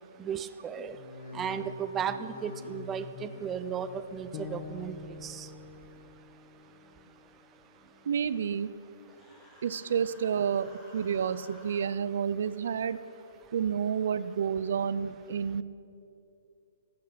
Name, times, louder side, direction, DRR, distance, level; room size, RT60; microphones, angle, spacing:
voice 1, 0.2-1.0 1.3-5.0 5.2-5.5, right 8 dB, 15° right, 12 dB, 0.5 m, -35 dB
sound 1, 0.8-6.2 6.5-7.1 7.6-8.3 8.7-9.3 9.8-10.4 10.9-11.5 12.0-12.1, left 4 dB, 75° left, 3.3 m, -49 dB
sound 2, 4.3-8.5, left 4 dB, 30° left, 1.2 m, -47 dB
voice 2, 8.1-8.7 9.6-13.0 13.5-15.6, right 7 dB, 65° right, 16 dB, 0.5 m, -30 dB
Human voice, 9.1-11.9, left 1 dB, 10° left, 2.2 m, -55 dB
15.0 x 12.0 x 5.9 m, 2.7 s
hypercardioid pair, 155°, 0 cm